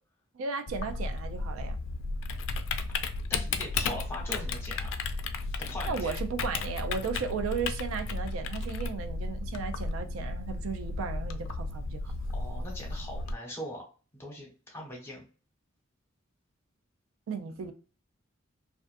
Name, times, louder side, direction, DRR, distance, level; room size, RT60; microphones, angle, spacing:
voice 1, 0.3-1.8 5.8-12.1 17.3-17.7, right 5 dB, 85° right, 0.4 m, -35 dB
Typing, 0.7-13.3, left 3 dB, 65° left, 0.3 m, -34 dB
voice 2, 3.3-4.9 5.6-6.2 12.3-13.8 14.1-15.3 17.3-17.7, left 1 dB, 15° left, 0.9 m, -41 dB
2.4 x 2.3 x 2.4 m
head